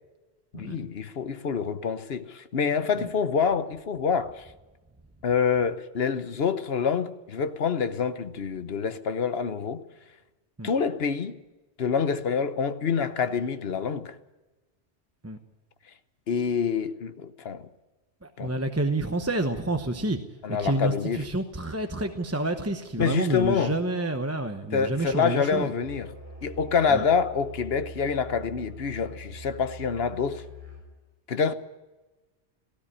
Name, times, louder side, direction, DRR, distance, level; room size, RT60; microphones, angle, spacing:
voice 1, 0.5-4.5 5.2-9.8 10.6-11.4 11.8-14.2 16.3-17.7 18.4-18.6 20.4-21.3 23.0-23.8 24.7-26.1 26.4-30.4 31.3-31.5, left 6 dB, 60° left, 1.2 m, -26 dB
voice 2, 18.2-20.2 20.5-25.7 26.9-27.0, right 2 dB, 15° right, 0.9 m, -28 dB
Musical instrument, 25.8-30.9, equal, 15° left, 6.2 m, -44 dB
17.5 x 15.0 x 10.0 m
omnidirectional pair, 1.2 m